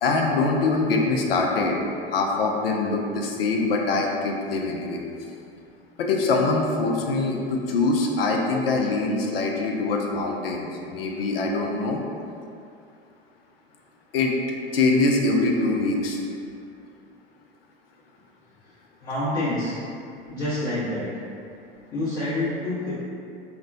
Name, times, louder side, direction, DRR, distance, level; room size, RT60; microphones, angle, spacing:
voice 1, 0.0-1.8 2.1-5.0 6.0-12.0 14.1-14.4 14.7-16.2, left 3 dB, 70° left, 1 dB, 0.4 m, -23 dB
voice 2, 19.0-19.7 20.3-21.1 21.9-22.9, left 1 dB, 30° left, -14 dB, 0.8 m, -27 dB
2.9 x 2.1 x 2.5 m, 2.5 s
figure-of-eight pair, 80°, 31 cm